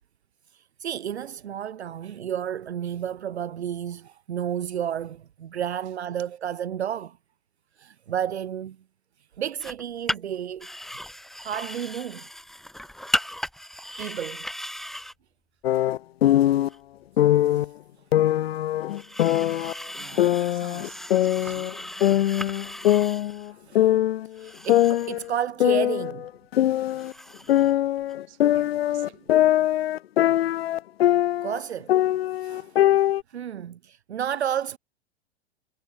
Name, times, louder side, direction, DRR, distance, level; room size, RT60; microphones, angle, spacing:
voice 1, 0.5-7.2 7.8-8.8 9.4-10.7 11.4-12.3 13.7-14.5 19.5-19.6 21.4-21.6 22.1-22.3 23.5-24.0 24.3-26.3 30.6-30.7 31.4-31.9 32.3-32.8 33.3-34.8, right 9 dB, 75° right, 0.7 m, -32 dB
sound 1, 9.6-9.8 10.1-10.2 10.6-15.1 16.7-16.8 18.9-23.5 24.3-25.3 26.9-27.7 28.0-28.1, equal, ahead, 1.7 m, -36 dB
sound 2, 15.6-16.7 17.2-17.7 18.1-19.7 20.2-21.7 22.0-23.5 23.8-24.3 24.7-27.1 27.5-31.6 31.9-33.2, left 13 dB, 65° left, 0.5 m, -22 dB
voice 2, 19.9-21.8 27.4-27.9 28.3-29.4, right 24 dB, 35° right, 3.8 m, -50 dB
figure-of-eight pair, 105°, 33 cm